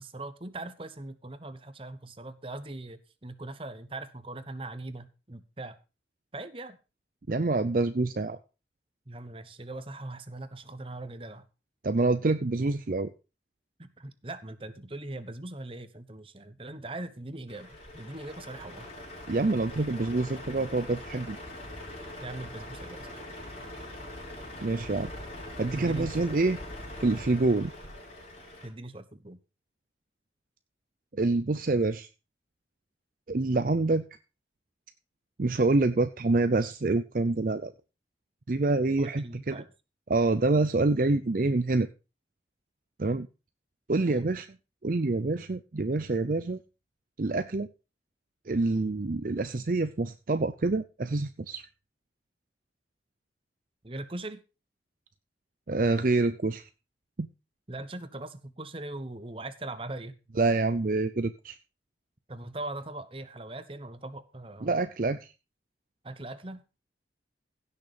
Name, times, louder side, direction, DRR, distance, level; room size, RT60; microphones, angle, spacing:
voice 1, 0.0-5.8 6.3-6.8 9.1-11.4 13.8-18.9 22.2-23.3 25.7-26.4 28.6-29.4 39.0-39.7 44.1-44.3 53.8-54.4 57.7-60.1 62.3-64.7 66.0-66.6, right 2 dB, 30° right, 12 dB, 1.1 m, -40 dB
voice 2, 7.3-8.4 11.8-13.1 19.3-21.4 24.6-25.1 25.6-26.6 27.0-27.7 31.1-32.1 33.3-34.0 35.4-37.7 38.5-39.6 40.1-41.9 43.0-43.3 43.9-44.5 44.8-46.6 47.2-47.7 48.5-51.7 55.7-56.7 57.2-57.3 60.4-61.6 64.6-65.3, right 3 dB, 50° right, 11 dB, 0.6 m, -26 dB
Truck, 17.5-28.7, left 1 dB, 35° left, 5.9 m, -42 dB
16.0 x 6.7 x 5.1 m, 0.31 s
head